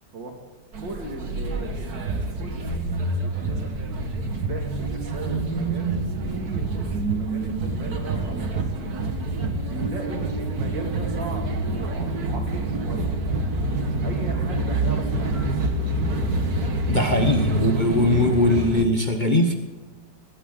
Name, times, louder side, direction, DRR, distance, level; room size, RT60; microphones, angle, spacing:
sound 1, 0.7-18.8, right 2 dB, 55° right, 2.1 m, -27 dB
voice 1, 0.7-3.8 4.5-8.5 8.7-8.9 9.7-13.2 13.7-15.6, right 2 dB, 75° right, 2 dB, 3.2 m, -38 dB
voice 2, 16.9-19.5, left 1 dB, 30° left, 3 dB, 1.0 m, -20 dB
20.0 x 17.5 x 3.9 m, 1.3 s
omnidirectional pair, 2.0 m